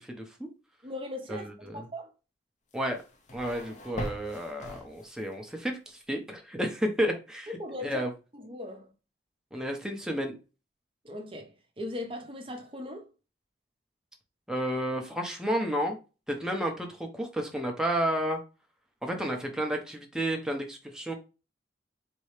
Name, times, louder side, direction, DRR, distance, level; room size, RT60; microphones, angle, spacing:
voice 1, 0.2-0.5 1.3-1.9 2.7-3.0 3.3-7.5 7.8-8.1 9.5-10.3 14.5-16.0 16.3-18.4 19.0-21.1, equal, 5° right, 0.9 m, -31 dB
voice 2, 0.8-2.1 7.5-8.1 8.3-8.9 11.0-13.1, left 1 dB, 30° right, 0.9 m, -39 dB
sound 1, 2.7-5.4, left 1 dB, 40° left, 0.8 m, -41 dB
4.3 x 3.0 x 3.3 m
head